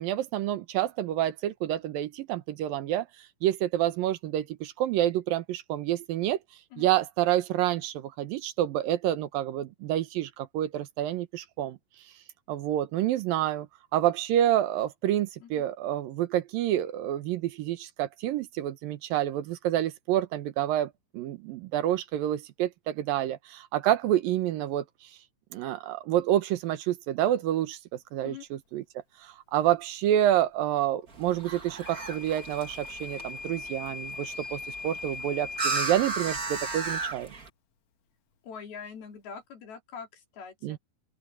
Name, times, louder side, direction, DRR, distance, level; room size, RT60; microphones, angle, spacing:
voice 1, 0.0-3.1 3.4-6.4 6.8-11.8 12.5-13.7 13.9-24.8 25.5-27.8 28.1-28.8 29.5-37.3 40.6-40.8, right 12 dB, 75° right, 2.8 m, -28 dB
sound 1, 31.1-37.5, right 4 dB, 25° right, 2.6 m, -35 dB
Microwave oven / Alarm, 31.9-35.9, left 3 dB, 55° left, 2.6 m, -40 dB
voice 2, 38.4-40.8, left 6 dB, 80° left, 5.6 m, -43 dB
open air
omnidirectional pair, 4.3 m